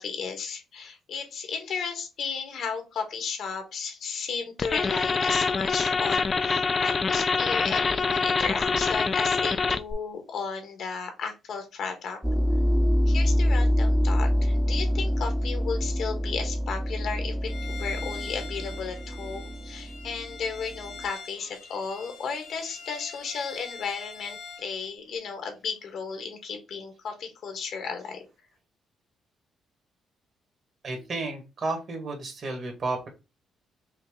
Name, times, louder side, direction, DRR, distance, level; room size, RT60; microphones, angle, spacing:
voice 1, 0.0-12.2 13.1-28.2, left 5 dB, 70° left, 5 dB, 1.3 m, -34 dB
sound 1, 4.6-9.9, left 4 dB, 35° left, 0.4 m, -25 dB
sound 2, 12.2-20.9, equal, 5° right, 0.7 m, -26 dB
Bowed string instrument, 17.5-24.7, left 5 dB, 85° left, 2.1 m, -43 dB
voice 2, 30.8-33.1, right 3 dB, 50° right, 3 dB, 1.7 m, -32 dB
5.7 x 2.1 x 3.5 m, 0.28 s
cardioid pair, 90°, 0 cm